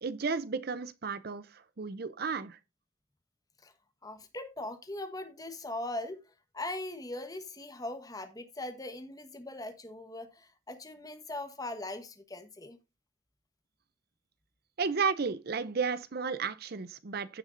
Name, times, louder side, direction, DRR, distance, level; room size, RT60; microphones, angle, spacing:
voice 1, 0.0-2.6 14.8-17.4, right 5 dB, 45° right, 0.6 m, -33 dB
voice 2, 4.0-6.2 6.5-12.8, left 2 dB, 15° left, 1.3 m, -40 dB
16.0 x 6.3 x 2.6 m
head